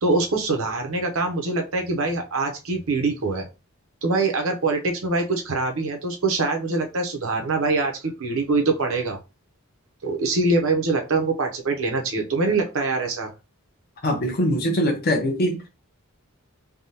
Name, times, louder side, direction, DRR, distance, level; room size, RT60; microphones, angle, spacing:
voice 1, 0.0-3.4 4.0-9.2 10.0-13.3, right 3 dB, 65° right, 0.7 m, -24 dB
voice 2, 14.0-15.6, equal, 45° left, 0.8 m, -22 dB
3.4 x 2.3 x 2.8 m
head